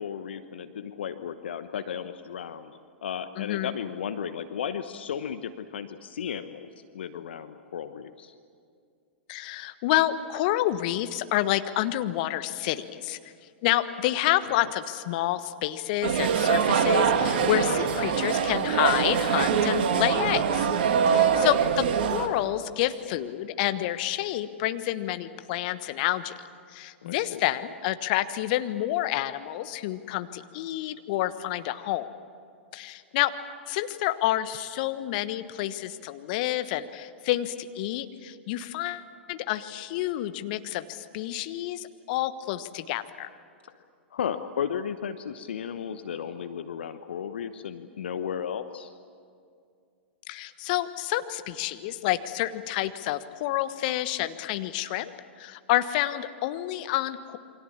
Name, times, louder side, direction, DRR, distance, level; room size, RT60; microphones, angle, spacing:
voice 1, 0.0-6.7 6.9-8.3 21.1-21.3 27.0-27.4 43.6-43.7 44.1-48.9, left 8 dB, 65° left, 10 dB, 1.1 m, -34 dB
voice 2, 3.4-3.7 9.3-13.2 13.6-20.7 21.1-26.3 26.7-32.1 32.7-33.3 33.7-43.3 50.3-55.1 55.4-57.4, left 14 dB, 45° left, 11 dB, 1.3 m, -29 dB
sound 1, 16.0-22.3, right 7 dB, 55° right, 2.3 m, -24 dB
28.5 x 24.5 x 7.3 m, 2.3 s
figure-of-eight pair, 105°, 6 cm